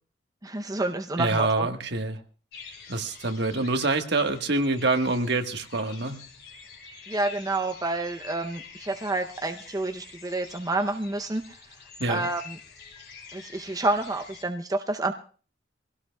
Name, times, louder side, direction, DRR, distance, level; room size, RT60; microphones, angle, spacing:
voice 1, 0.4-1.7 7.1-11.6 12.1-12.6 13.3-15.1, right 2 dB, 20° right, 5 dB, 0.6 m, -29 dB
voice 2, 1.2-2.2 2.9-6.2 12.0-12.3, right 2 dB, 60° right, 6 dB, 1.4 m, -26 dB
sound 1, 2.5-14.4, left 5 dB, 60° left, 3.4 m, -47 dB
23.5 x 17.0 x 2.3 m, 0.39 s
head